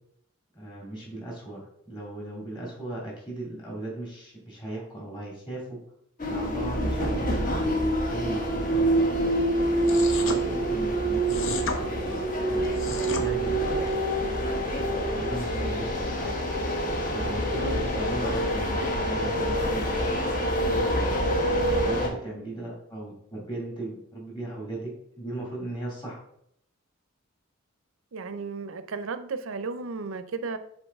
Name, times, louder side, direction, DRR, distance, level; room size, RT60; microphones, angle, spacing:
voice 1, 0.5-5.8 6.3-9.3 9.9-11.6 11.9-12.2 12.5-13.8 14.6-16.4 16.8-19.9 20.2-21.3 21.7-24.9 25.2-26.2, right 1 dB, 20° left, -4 dB, 2.5 m, -37 dB
sound 1, 6.2-22.1, right 1 dB, 40° left, 1.0 m, -26 dB
sound 2, 9.8-10.4 11.3-11.8 12.6-13.2, left 4 dB, 60° left, 0.7 m, -32 dB
voice 2, 28.1-30.6, right 4 dB, 70° right, 11 dB, 0.5 m, -34 dB
7.1 x 3.9 x 3.5 m, 0.70 s
head